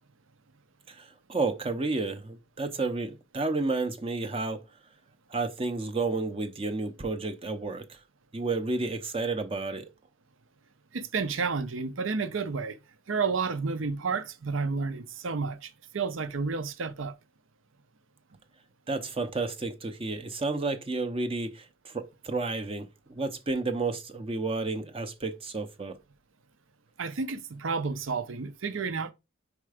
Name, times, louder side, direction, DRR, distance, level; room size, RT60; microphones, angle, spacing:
voice 1, 0.9-4.6 5.3-8.0 8.3-9.9 18.9-26.0, right 3 dB, 25° right, 0.6 m, -31 dB
voice 2, 10.9-12.8 13.1-17.2 27.0-29.1, right 4 dB, 80° right, 0.7 m, -31 dB
4.7 x 4.3 x 4.9 m
head